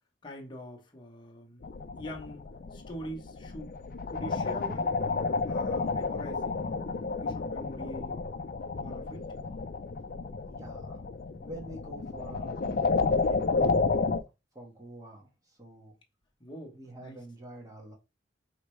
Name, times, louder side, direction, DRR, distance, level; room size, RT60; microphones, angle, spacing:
voice 1, 0.2-1.6 2.0-3.7 4.1-4.9 5.5-6.7 7.2-8.2 8.8-9.3 13.6-13.8 16.4-17.2, equal, 25° left, 1.1 m, -43 dB
sound 1, 1.6-14.2, left 4 dB, 50° left, 0.4 m, -31 dB
voice 2, 10.5-11.0 11.4-12.5 13.2-14.1 14.5-15.9 16.7-17.9, right 1 dB, 20° right, 1.4 m, -47 dB
4.9 x 3.2 x 3.1 m
head